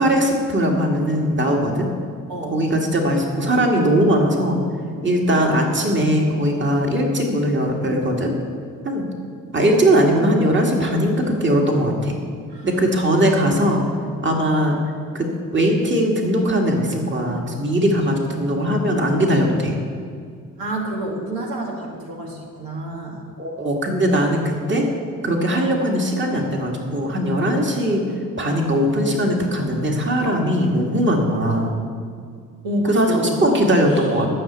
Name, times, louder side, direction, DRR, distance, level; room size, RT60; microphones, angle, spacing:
voice 1, 0.0-1.9 2.5-4.6 5.0-8.3 8.8-9.1 9.5-12.1 12.6-13.8 14.2-14.8 15.1-15.3 15.5-19.8 23.4-24.9 25.2-28.0 28.4-31.8 32.9-34.3, equal, 35° right, 1 dB, 2.0 m, -19 dB
voice 2, 20.6-23.2 32.6-33.5 33.8-34.3, right 1 dB, 90° right, -2 dB, 2.1 m, -28 dB
12.0 x 5.9 x 8.1 m, 2.2 s
cardioid pair, 75°, 35 cm